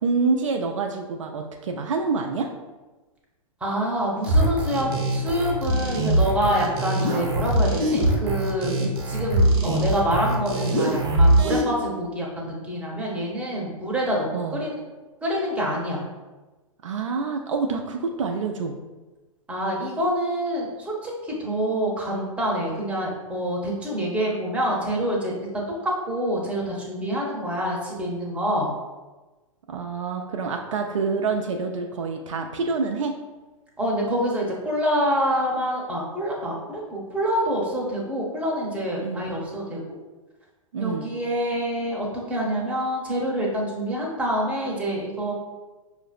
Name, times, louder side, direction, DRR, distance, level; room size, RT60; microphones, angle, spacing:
voice 1, 0.0-2.5 8.8-8.9 14.3-14.6 16.8-18.8 29.7-33.1 39.0-39.3 40.7-41.1, right 4 dB, 60° right, 3 dB, 0.4 m, -27 dB
voice 2, 3.6-8.7 9.1-14.8 15.2-16.0 19.5-25.5 25.8-28.7 33.8-40.0 40.8-45.3, equal, 5° right, -3 dB, 0.8 m, -26 dB
sound 1, 4.2-11.6, right 1 dB, 45° right, 0.9 m, -22 dB
5.5 x 2.5 x 2.5 m, 1.2 s
figure-of-eight pair, 105°, 18 cm